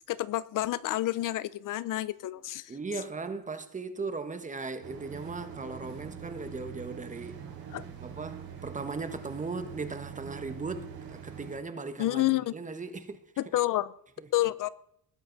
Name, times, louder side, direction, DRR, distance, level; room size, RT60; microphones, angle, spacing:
voice 1, 0.1-2.7 7.7-7.9 12.0-12.5 13.4-13.9 14.3-14.7, left 15 dB, 60° left, 0.7 m, -29 dB
voice 2, 2.7-7.4 8.0-13.2 14.2-14.3, right 4 dB, 20° right, 1.4 m, -38 dB
sound 1, 4.8-11.5, right 8 dB, 80° right, 5.1 m, -44 dB
21.0 x 13.5 x 4.1 m
cardioid pair, 140°, 35 cm